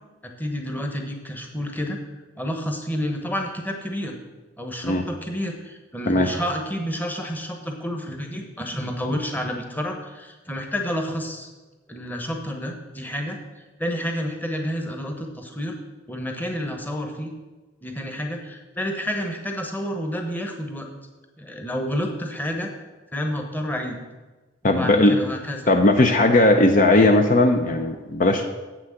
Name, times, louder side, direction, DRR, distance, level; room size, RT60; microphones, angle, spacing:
voice 1, 0.2-2.0 2.4-4.1 4.6-11.5 11.9-13.4 13.8-15.7 16.1-17.3 17.8-20.9 21.4-22.7 23.1-24.0 24.6-25.7, equal, 10° left, 3 dB, 1.0 m, -29 dB
voice 2, 24.6-25.2 25.7-28.4, left 2 dB, 45° left, 4 dB, 0.6 m, -17 dB
7.7 x 6.2 x 7.6 m, 1.2 s
head